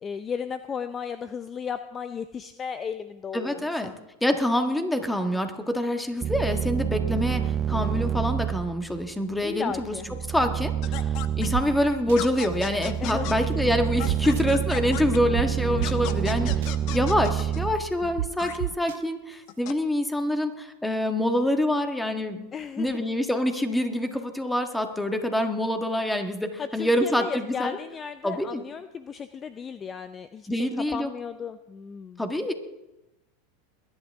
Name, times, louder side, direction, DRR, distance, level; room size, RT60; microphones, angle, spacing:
voice 1, 0.0-3.9 9.4-10.1 13.0-13.5 22.5-23.0 26.6-32.2, left 6 dB, 25° left, 11 dB, 0.6 m, -35 dB
voice 2, 3.3-3.9 4.2-9.9 10.3-11.1 11.4-22.5 22.8-27.8 28.2-28.6 30.5-31.1 32.2-32.5, left 1 dB, 5° left, 6 dB, 1.7 m, -26 dB
sound 1, 6.2-18.7, right 9 dB, 30° right, 0.8 m, -28 dB
sound 2, 10.8-11.5 12.2-13.4 14.0-15.2 15.8-17.6 18.4-18.6 19.5-19.7, left 13 dB, 55° left, 1.0 m, -36 dB
sound 3, 11.5-11.6 12.1-12.2 14.1-14.4 15.3-15.4 15.8-15.9 16.5-16.7 18.2-18.3 18.6-19.0, right 14 dB, 75° right, 0.5 m, -28 dB
22.0 x 11.0 x 3.6 m, 1.0 s
hypercardioid pair, 100°, 0 cm